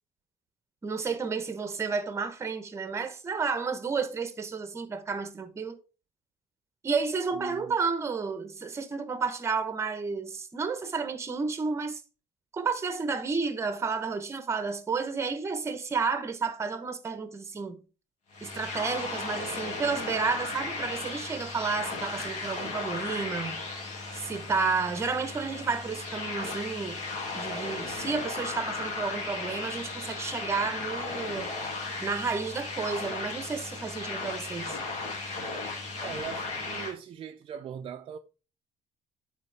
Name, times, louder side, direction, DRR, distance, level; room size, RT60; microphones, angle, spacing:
voice 1, 0.8-5.7 6.8-12.0 12.5-17.8 18.4-23.6 24.1-27.0 27.3-31.5 32.0-34.8, right 5 dB, 20° right, 0.9 m, -31 dB
voice 2, 7.3-7.8 36.0-38.2, right 8 dB, 45° right, 0.5 m, -40 dB
sound 1, 18.3-36.9, left 3 dB, 60° left, 2.4 m, -36 dB
9.7 x 4.7 x 3.3 m
cardioid pair, 160°, 13 cm